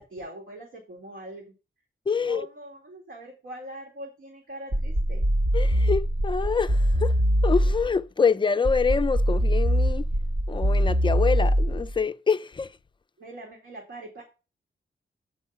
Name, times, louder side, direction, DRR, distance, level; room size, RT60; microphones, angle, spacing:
voice 1, 0.0-1.4 2.2-5.2 13.2-14.2, right 1 dB, 75° right, 2.3 m, -42 dB
voice 2, 2.1-2.5 5.5-7.2 7.4-10.1 10.5-12.8, left 5 dB, 25° left, 0.4 m, -26 dB
sound 1, 4.7-8.0 8.6-12.0, equal, 60° right, 1.3 m, -23 dB
7.0 x 5.5 x 5.6 m
wide cardioid pair, 115°, 20 cm